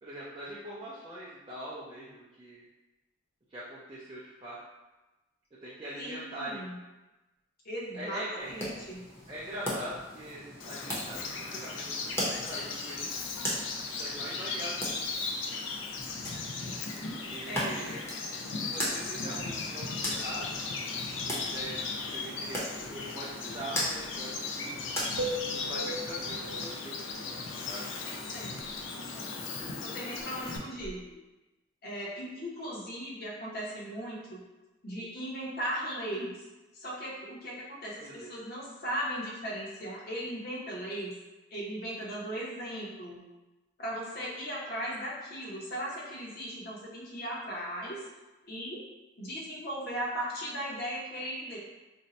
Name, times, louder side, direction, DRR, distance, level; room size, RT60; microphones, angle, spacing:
voice 1, 0.0-2.6 3.5-4.6 5.6-6.6 7.9-8.5 9.3-13.2 14.0-15.3 17.0-18.0 18.6-20.6 21.2-24.8 25.5-27.2 27.7-27.9 38.0-38.3, right 1 dB, 25° right, -8 dB, 0.4 m, -42 dB
voice 2, 6.0-6.8 7.6-9.0 16.6-16.8 17.5-17.7 28.0-28.5 29.0-29.3 29.8-31.0 31.8-34.4 34.8-36.3 36.7-41.1 41.5-43.2 43.8-48.0 48.5-48.8 49.2-51.6, equal, 50° left, -5 dB, 0.8 m, -37 dB
sound 1, 8.4-25.8, equal, 15° left, 0.7 m, -39 dB
Bird vocalization bird call bird song, 10.6-30.6, left 4 dB, 70° left, 0.4 m, -37 dB
sound 2, 25.2-27.4 29.6-31.1, right 1 dB, 70° right, 0.8 m, -40 dB
2.6 x 2.1 x 4.0 m, 1.1 s
head